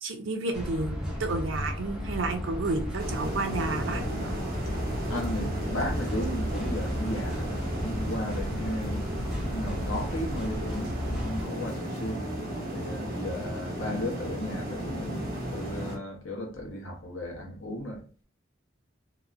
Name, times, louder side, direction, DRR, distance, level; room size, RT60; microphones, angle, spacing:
voice 1, 0.0-4.4, right 2 dB, 80° right, 0.6 m, -31 dB
sound 1, 0.5-11.5, equal, 5° right, 0.6 m, -34 dB
sound 2, 3.0-16.0, right 1 dB, 50° right, 0.9 m, -35 dB
voice 2, 5.1-12.3 12.7-18.2, left 1 dB, 90° left, 0.9 m, -35 dB
2.8 x 2.1 x 2.4 m
head